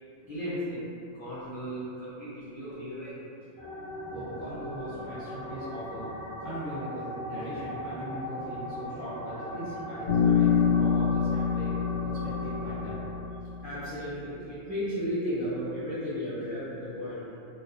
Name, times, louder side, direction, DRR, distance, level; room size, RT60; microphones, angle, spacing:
voice 1, 0.2-3.1 13.6-17.2, equal, 55° left, -12 dB, 0.6 m, -34 dB
sound 1, 3.6-13.1, left 1 dB, 30° right, 1.0 m, -39 dB
voice 2, 4.1-6.1 6.4-13.0, right 1 dB, 60° right, -13 dB, 0.5 m, -39 dB
Bass guitar, 10.1-14.0, left 7 dB, 90° left, 1.0 m, -26 dB
2.4 x 2.2 x 2.4 m, 2.6 s
omnidirectional pair, 1.4 m